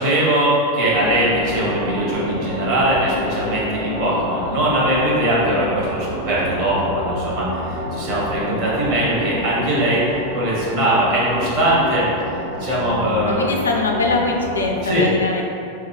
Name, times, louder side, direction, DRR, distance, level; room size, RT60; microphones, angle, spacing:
voice 1, 0.0-10.0 10.3-12.0 12.6-13.4 14.8-15.0, right 1 dB, 40° right, -6 dB, 0.9 m, -20 dB
sound 1, 0.9-14.9, left 1 dB, 75° right, 1.2 m, -28 dB
voice 2, 13.3-15.4, left 3 dB, 70° left, 1 dB, 0.3 m, -22 dB
3.2 x 2.2 x 3.1 m, 2.6 s
figure-of-eight pair, 90°, 0 cm